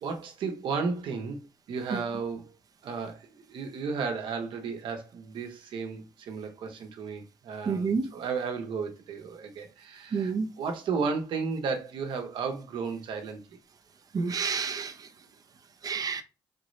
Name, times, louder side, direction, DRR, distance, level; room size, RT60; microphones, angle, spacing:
voice 1, 0.0-1.4 1.7-2.5 2.8-13.6, right 5 dB, 80° right, 1.1 m, -34 dB
voice 2, 7.7-8.1 10.1-10.5 14.1-14.9 15.8-16.2, right 5 dB, 50° right, 0.7 m, -29 dB
4.2 x 2.7 x 3.2 m
cardioid pair, 85°, 8 cm